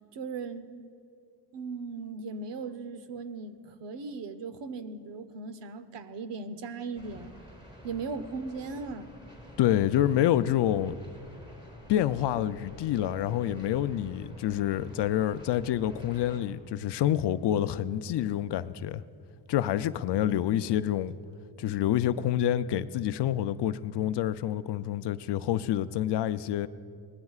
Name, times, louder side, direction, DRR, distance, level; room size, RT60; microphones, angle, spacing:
voice 1, 0.1-0.9 1.5-7.3 7.8-9.1, right 4 dB, 70° right, 1.0 m, -38 dB
sound 1, 6.9-16.4, equal, 10° right, 3.6 m, -49 dB
voice 2, 9.6-10.9 11.9-19.0 19.5-21.1 21.6-26.7, left 11 dB, 65° left, 0.5 m, -27 dB
24.0 x 19.0 x 2.4 m
cardioid pair, 115°, 45 cm